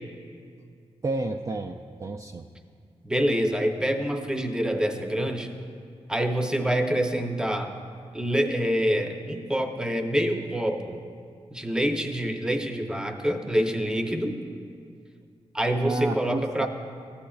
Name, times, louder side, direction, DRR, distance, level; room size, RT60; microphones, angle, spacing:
voice 1, 1.0-2.4 15.8-16.7, right 2 dB, 30° right, 3 dB, 0.3 m, -30 dB
voice 2, 3.0-5.5 6.1-7.7 8.1-11.0 11.5-14.4 15.5-16.7, equal, 5° right, 5 dB, 0.7 m, -26 dB
14.0 x 8.6 x 2.3 m, 2.2 s
cardioid pair, 75°, 11 cm